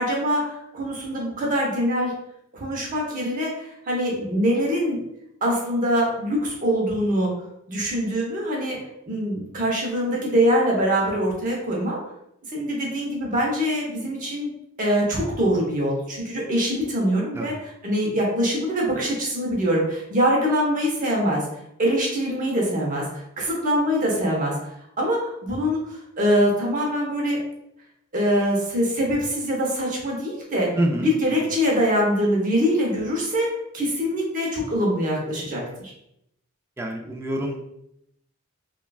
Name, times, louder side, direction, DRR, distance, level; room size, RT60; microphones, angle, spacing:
voice 1, 0.0-2.1 2.5-5.0 5.4-7.3 7.7-8.8 9.1-12.0 12.5-21.4 21.8-24.6 25.0-27.4 28.1-30.7 31.0-33.5 33.7-35.9, equal, 40° right, -2 dB, 0.8 m, -23 dB
voice 2, 30.8-31.1 36.8-37.7, right 1 dB, 10° right, 1 dB, 0.3 m, -26 dB
3.0 x 2.3 x 2.3 m, 0.77 s
head